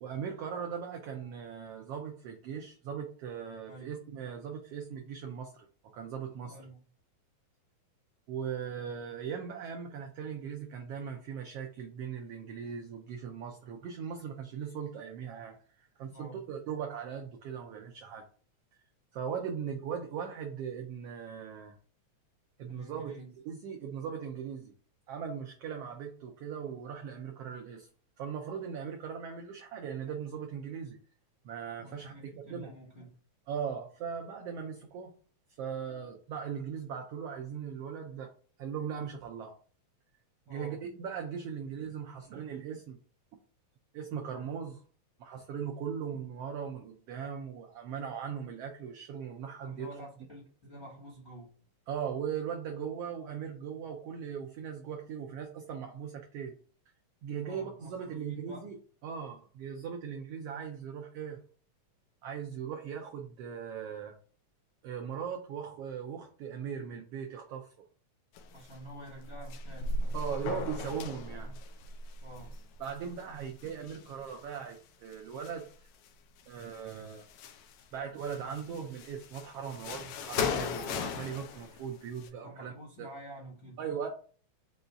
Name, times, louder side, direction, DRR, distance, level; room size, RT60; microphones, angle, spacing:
voice 1, 0.0-5.7 5.9-6.5 8.3-18.2 19.1-21.8 22.6-23.1 23.5-24.7 25.1-27.9 28.2-31.0 31.4-32.1 32.5-32.7 33.5-35.1 35.6-38.3 38.6-39.5 40.5-43.0 43.9-44.8 45.2-49.9 51.9-56.5 57.2-58.8 59.0-61.4 62.2-64.2 64.8-67.7 70.1-71.6 72.8-75.6 76.5-77.2 77.9-82.7 83.0-83.1 83.8-84.1, right 7 dB, 90° right, 1.3 m, -39 dB
voice 2, 6.4-6.8 16.0-16.4 22.6-23.3 31.8-33.2 40.5-40.8 49.6-51.5 57.4-58.7 68.5-70.2 72.2-72.7 82.4-83.8, right 1 dB, 40° left, 0.8 m, -49 dB
sound 1, 68.3-68.8 69.1-74.6 75.1-76.1 76.4-77.8 78.2-82.3, left 4 dB, 90° left, 1.3 m, -38 dB
5.3 x 2.3 x 3.9 m
omnidirectional pair, 3.4 m